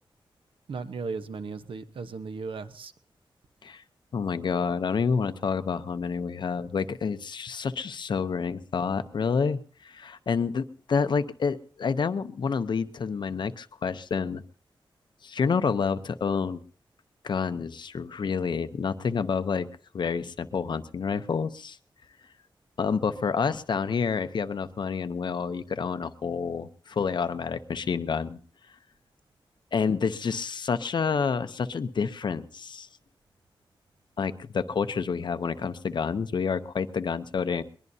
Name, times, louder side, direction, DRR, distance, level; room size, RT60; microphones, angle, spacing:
voice 1, 0.7-2.9, right 4 dB, 75° right, 9 dB, 1.1 m, -36 dB
voice 2, 4.1-14.4 15.2-16.6 17.2-19.7 19.9-21.8 22.8-28.4 29.7-32.9 34.2-37.6, left 5 dB, 60° left, 12 dB, 0.7 m, -28 dB
22.0 x 21.0 x 2.8 m, 0.43 s
wide cardioid pair, 175°, 9 cm